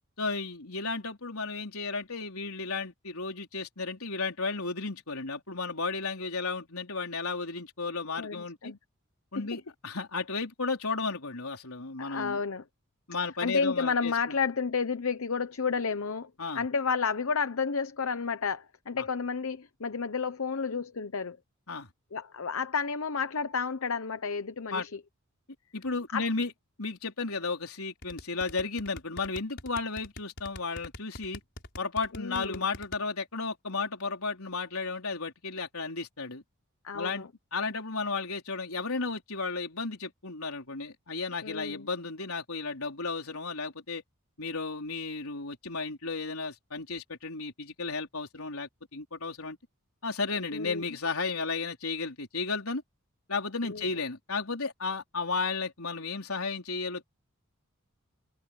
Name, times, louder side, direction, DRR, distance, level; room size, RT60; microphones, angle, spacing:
voice 1, 0.2-8.7 9.3-12.4 13.1-14.4 16.4-16.6 21.7-21.9 24.7-24.9 25.7-26.5 26.8-31.4 31.8-36.4 36.9-44.0 44.4-49.6 50.0-52.8 53.3-57.1, left 4 dB, 85° left, 4.2 m, -34 dB
voice 2, 8.2-8.8 9.4-9.5 12.0-12.6 13.4-21.4 22.1-25.0 26.1-26.2 32.1-32.7 36.8-37.3 41.4-41.9 50.5-50.8 53.6-53.8, left 5 dB, 70° left, 0.9 m, -31 dB
sound 1, 28.0-33.0, left 2 dB, 55° left, 5.0 m, -42 dB
head